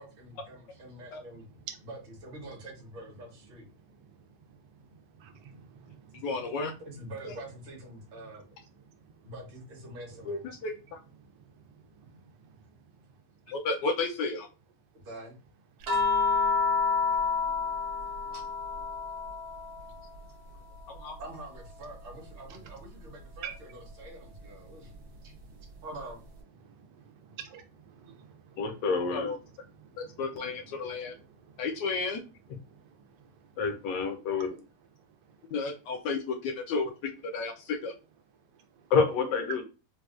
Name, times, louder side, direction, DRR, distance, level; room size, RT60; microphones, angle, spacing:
voice 1, 0.0-1.5 1.8-3.7 6.8-8.4 9.2-10.4 15.0-15.4 21.2-24.9 25.2-25.3 25.8-26.2, right 1 dB, 40° right, 0.9 m, -45 dB
voice 2, 3.8-6.6 8.2-8.3 8.8-9.3 10.1-10.3 11.2-13.2 15.8-16.3 17.1-17.2 19.8-19.9 22.5-22.6 23.4-23.5 24.6-25.9 26.6-26.8 27.5-29.2 29.4-31.7 32.6-33.6 35.0-35.5 38.5-38.9, right 8 dB, 80° right, 1.2 m, -52 dB
voice 3, 6.1-6.7 7.2-7.3 10.3-10.7 13.5-14.5 21.0-21.2 29.1-29.4 30.0-31.1 31.6-32.2 35.5-37.9, left 4 dB, 85° left, 1.2 m, -32 dB
sound 1, 15.9-20.3 20.7-22.3 23.9-24.0, left 5 dB, 65° right, 1.4 m, -30 dB
voice 4, 28.6-29.3 33.6-34.6 38.9-39.6, left 5 dB, 65° left, 1.0 m, -28 dB
4.1 x 2.2 x 2.4 m
omnidirectional pair, 1.8 m